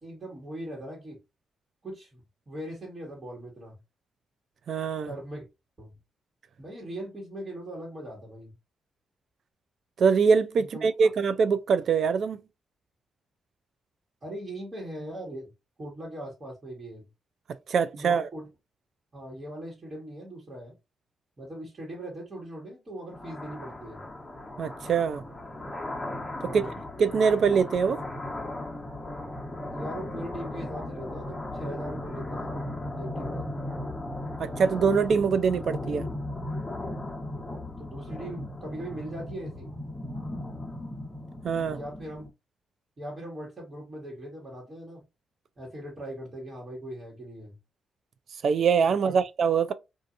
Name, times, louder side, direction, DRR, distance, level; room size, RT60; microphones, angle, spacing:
voice 1, 0.0-1.2 1.8-2.2 2.5-3.7 5.0-5.4 5.8-6.0 6.6-8.5 10.6-11.1 14.2-15.5 15.8-17.1 17.9-18.5 19.1-20.8 21.4-24.1 26.4-26.8 29.7-32.5 33.0-33.6 37.8-39.7 41.7-42.2 43.0-45.0 45.6-47.6 49.0-49.2, right 1 dB, 40° right, 1.3 m, -40 dB
voice 2, 4.7-5.1 10.0-12.4 17.7-18.2 24.6-25.2 26.5-26.6 27.0-28.0 34.4-36.0 41.4-41.8 48.4-49.7, right 6 dB, 65° right, 0.3 m, -23 dB
sound 1, 23.1-42.3, left 1 dB, 15° left, 0.9 m, -36 dB
2.7 x 2.4 x 2.4 m
supercardioid pair, 60°, 0 cm